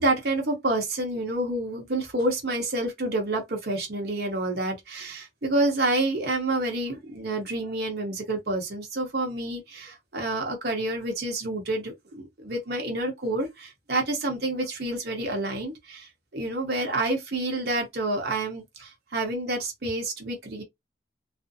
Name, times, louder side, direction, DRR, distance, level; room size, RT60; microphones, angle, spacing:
voice 1, 0.0-20.6, right 2 dB, 60° right, 0.9 m, -28 dB
2.5 x 2.0 x 2.6 m
head